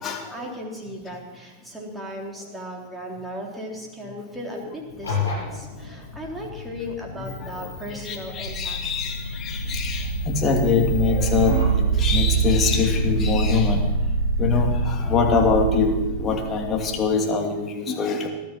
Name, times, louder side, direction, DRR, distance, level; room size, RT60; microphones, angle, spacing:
voice 1, 0.3-9.1, equal, 5° right, -1 dB, 3.7 m, -36 dB
sound 1, 4.9-11.8, left 4 dB, 80° left, 7.7 m, -34 dB
voice 2, 8.1-11.5 12.0-13.8 14.4-18.3, left 5 dB, 25° left, 2 dB, 2.7 m, -23 dB
sound 2, 8.3-17.1, right 5 dB, 80° right, 1.1 m, -25 dB
19.5 x 12.5 x 6.0 m, 1.1 s
figure-of-eight pair, 90°, 0 cm